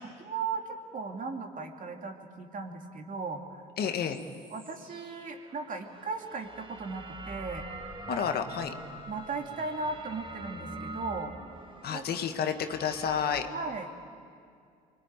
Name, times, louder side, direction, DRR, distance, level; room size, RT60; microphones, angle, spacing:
voice 1, 0.0-3.6 4.5-7.6 8.1-8.2 9.1-11.3 11.9-12.0 13.5-14.0, right 4 dB, 45° right, 3 dB, 2.9 m, -37 dB
voice 2, 3.8-4.2 8.1-8.7 11.8-13.5, left 8 dB, 60° left, 7 dB, 1.7 m, -30 dB
sound 1, 3.8-13.5, right 2 dB, 30° right, 2.6 m, -45 dB
24.5 x 21.5 x 9.2 m, 2.4 s
hypercardioid pair, 65°, 18 cm